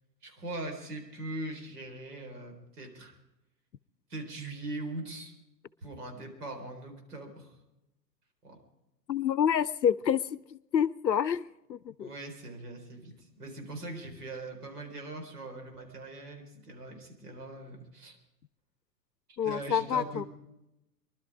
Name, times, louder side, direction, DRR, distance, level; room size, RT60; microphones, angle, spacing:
voice 1, 0.2-3.2 4.1-5.3 5.8-7.5 8.4-8.6 12.0-18.2 19.4-20.3, right 2 dB, 65° right, 3 dB, 4.3 m, -41 dB
voice 2, 9.1-10.2 10.5-12.1 19.4-20.2, left 8 dB, 85° left, 19 dB, 0.6 m, -28 dB
23.5 x 12.0 x 4.9 m, 0.93 s
figure-of-eight pair, 105°, 50 cm